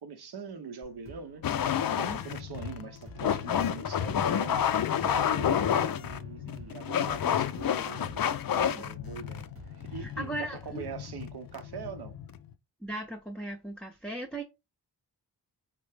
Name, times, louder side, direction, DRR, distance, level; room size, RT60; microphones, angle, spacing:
voice 1, 0.0-4.7 5.0-9.5 9.8-12.2, right 6 dB, 65° right, 0.7 m, -43 dB
sound 1, 0.8-10.1, right 1 dB, 30° right, 0.9 m, -51 dB
sound 2, 1.4-12.5, left 9 dB, 55° left, 0.5 m, -30 dB
voice 2, 10.0-10.8 12.8-14.4, right 1 dB, ahead, 0.6 m, -38 dB
4.5 x 2.0 x 3.2 m
cardioid pair, 50°, 42 cm